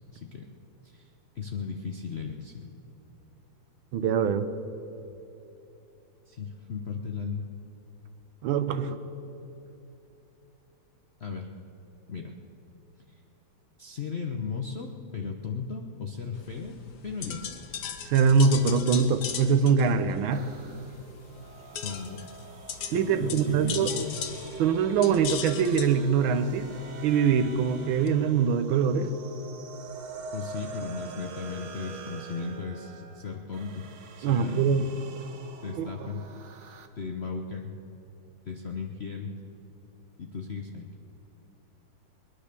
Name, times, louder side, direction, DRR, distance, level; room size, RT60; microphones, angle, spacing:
voice 1, 0.1-0.4 0.8-2.7 6.3-7.5 11.2-11.5 12.1-12.4 13.1-13.2 13.8-16.7 17.0-17.5 21.8-22.2 22.9-24.2 30.3-33.8 34.2-34.7 35.6-36.2 37.0-37.7 38.5-39.3 40.2-40.9, left 5 dB, 80° left, 3 dB, 0.5 m, -36 dB
voice 2, 3.9-4.5 8.4-9.0 18.0-20.5 22.9-23.9 24.6-26.7 27.0-29.1 34.2-34.8 35.8-35.9, right 6 dB, 75° right, 10 dB, 1.6 m, -23 dB
sound 1, 16.3-28.1, left 7 dB, 60° left, 1.5 m, -39 dB
sound 2, 20.3-36.9, right 4 dB, 55° right, 0.8 m, -45 dB
21.5 x 10.0 x 6.7 m, 3.0 s
omnidirectional pair, 2.4 m